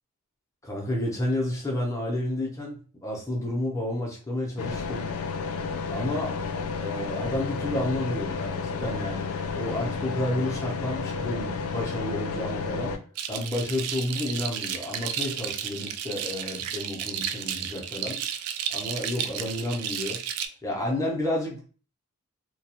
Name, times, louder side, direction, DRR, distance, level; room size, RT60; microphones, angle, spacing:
voice 1, 0.6-5.1 5.9-6.4 6.8-9.3 9.5-12.9 13.3-18.2 18.7-20.2 20.6-21.7, left 1 dB, 15° left, -2 dB, 0.7 m, -30 dB
sound 1, 4.6-13.0, left 5 dB, 70° left, 0.4 m, -31 dB
sound 2, 13.2-20.5, right 9 dB, 90° right, 0.3 m, -33 dB
2.3 x 2.3 x 2.8 m, 0.39 s
head